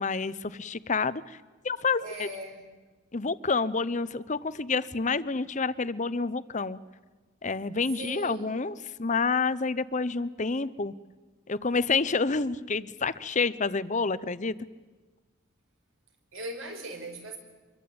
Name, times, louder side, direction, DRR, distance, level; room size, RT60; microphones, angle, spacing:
voice 1, 0.0-1.4 1.6-2.3 3.1-6.8 7.4-10.9 11.5-14.6, left 4 dB, 35° left, 16 dB, 0.7 m, -28 dB
voice 2, 2.0-2.6 8.0-8.7 16.3-17.4, right 1 dB, 70° right, 4 dB, 5.3 m, -39 dB
25.5 x 22.5 x 8.7 m, 1.3 s
head